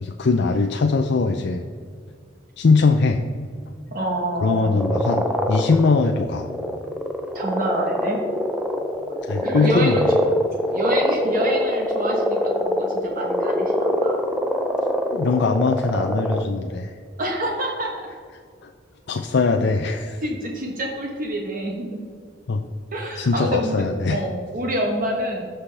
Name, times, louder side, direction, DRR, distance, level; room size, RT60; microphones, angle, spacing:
voice 1, 0.0-1.7 2.6-3.2 4.4-6.5 9.2-10.1 15.1-16.9 18.6-18.7 19.1-20.2 22.5-22.6 23.2-24.2, left 4 dB, 60° left, 5 dB, 0.5 m, -21 dB
voice 2, 3.9-4.8 7.3-8.2 9.4-14.2 17.2-17.9 20.2-21.9 22.9-25.5, equal, 45° right, 0 dB, 1.1 m, -27 dB
sound 1, 4.8-16.4, equal, 5° right, 0.5 m, -24 dB
15.5 x 5.7 x 3.4 m, 2.1 s
head